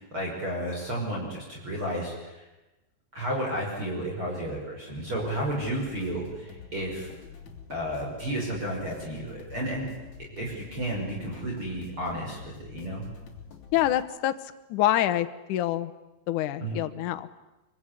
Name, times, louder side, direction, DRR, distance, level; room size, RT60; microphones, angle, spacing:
voice 1, 0.0-2.4 3.1-7.1 7.7-9.9 10.3-13.1 16.6-16.8, right 1 dB, 30° right, -2 dB, 6.5 m, -32 dB
sound 1, 5.1-14.0, left 5 dB, 40° left, 4.2 m, -47 dB
voice 2, 13.7-14.3 14.7-15.9 16.3-17.3, left 13 dB, 70° left, 9 dB, 1.9 m, -26 dB
24.5 x 24.5 x 9.9 m, 1.0 s
omnidirectional pair, 5.1 m